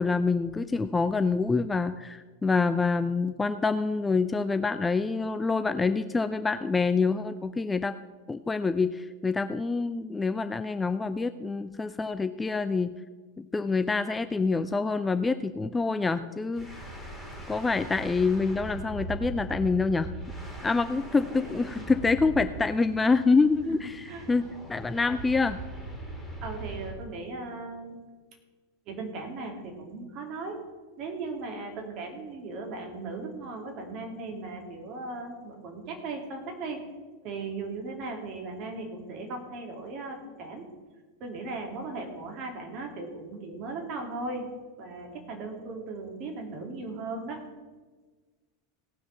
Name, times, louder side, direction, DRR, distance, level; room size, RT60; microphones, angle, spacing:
voice 1, 0.0-8.0 8.3-12.9 13.4-16.7 17.5-20.1 20.6-25.6, left 4 dB, 10° left, 11 dB, 0.4 m, -26 dB
sound 1, 16.5-27.1, right 2 dB, 5° right, 2.9 m, -40 dB
voice 2, 26.4-28.0 28.9-30.6 31.0-36.8 37.2-40.7 41.2-44.4 44.8-47.4, right 3 dB, 40° right, 2 dB, 2.7 m, -37 dB
17.5 x 6.2 x 5.8 m, 1.3 s
figure-of-eight pair, 90°, 0 cm